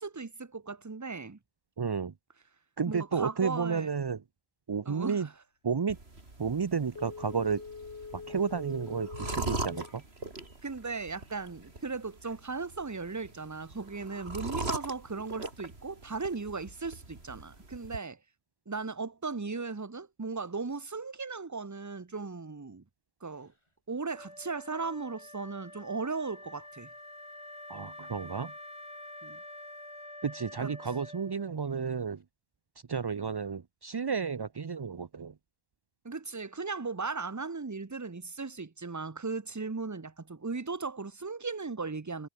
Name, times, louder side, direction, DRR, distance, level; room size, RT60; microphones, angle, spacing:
voice 1, 0.0-1.4 2.9-3.9 4.8-5.3 10.6-18.2 18.7-22.8 23.2-23.5 23.9-26.9 29.2-29.4 30.6-30.7 36.0-42.3, right 4 dB, 20° right, 0.7 m, -37 dB
voice 2, 1.8-2.1 2.8-4.2 4.7-5.3 5.6-6.0 6.4-7.6 8.1-10.0 27.7-28.5 30.2-32.2 32.9-35.3, right 6 dB, 40° right, 0.3 m, -32 dB
sound 1, 5.9-18.0, right 2 dB, 70° right, 4.1 m, -41 dB
Telephone, 6.9-10.0 10.4-10.5, left 5 dB, 80° left, 2.0 m, -44 dB
Wind instrument woodwind instrument, 24.1-31.7, left 1 dB, 25° left, 4.8 m, -47 dB
omnidirectional pair, 1.1 m